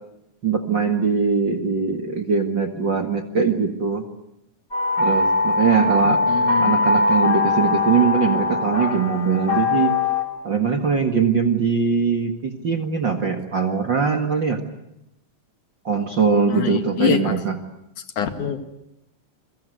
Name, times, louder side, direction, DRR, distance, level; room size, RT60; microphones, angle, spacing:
voice 1, 0.4-4.0 5.0-6.2 6.6-9.9 10.4-14.6 15.8-17.6, right 5 dB, 40° right, 5 dB, 2.0 m, -21 dB
sound 1, 4.7-10.2, left 3 dB, 25° left, 4.8 m, -21 dB
voice 2, 6.0-6.8 16.5-17.3 18.2-18.6, left 8 dB, 65° left, 8 dB, 3.3 m, -25 dB
28.5 x 23.5 x 8.2 m, 0.84 s
omnidirectional pair, 3.9 m